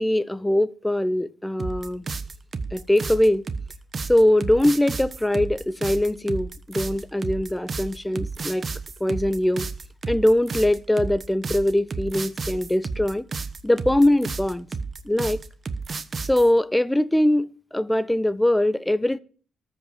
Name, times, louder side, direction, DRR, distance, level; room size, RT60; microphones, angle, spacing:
voice 1, 0.0-2.0 2.7-3.4 4.1-8.7 9.0-9.7 10.1-13.3 13.6-14.7 15.0-15.4 16.2-19.2, left 1 dB, 5° left, 0.6 m, -22 dB
sound 1, 1.6-16.5, right 4 dB, 40° right, 1.0 m, -32 dB
13.5 x 5.3 x 8.1 m
cardioid pair, 90°, 0 cm